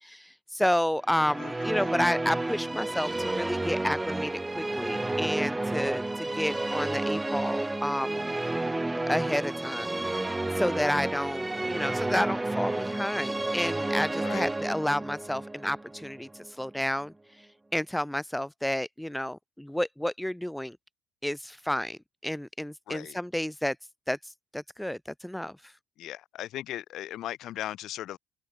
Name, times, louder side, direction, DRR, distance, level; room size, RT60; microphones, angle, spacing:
voice 1, 0.0-8.2 9.1-10.3 10.6-17.1 17.7-20.8 21.2-23.8 24.1-25.5, left 1 dB, 5° left, 0.6 m, -31 dB
Musical instrument, 1.1-16.5, right 2 dB, 15° right, 2.6 m, -31 dB
voice 2, 1.4-2.0 14.2-14.5 22.9-23.2 26.0-28.2, left 13 dB, 65° left, 5.4 m, -38 dB
hypercardioid pair, 65°, 0 cm